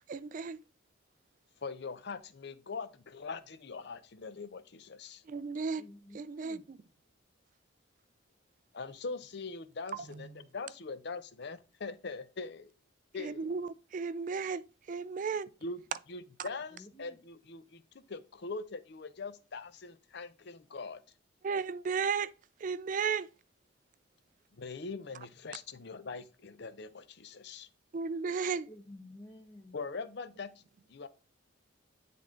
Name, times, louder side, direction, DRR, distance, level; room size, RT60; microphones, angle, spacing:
voice 1, 0.1-0.6 5.3-5.8 6.1-6.8 9.9-10.4 13.2-15.5 16.4-16.5 21.4-22.3 22.6-23.3 27.9-28.7, right 5 dB, 40° right, 0.3 m, -34 dB
voice 2, 1.6-5.2 8.7-12.7 13.1-13.5 15.6-15.8 16.1-21.0 24.6-27.7 29.7-30.5 30.9-31.1, left 4 dB, 55° left, 0.6 m, -42 dB
voice 3, 5.8-6.6 16.7-17.2 28.7-29.8, left 1 dB, 25° left, 1.1 m, -52 dB
9.5 x 3.6 x 3.7 m
head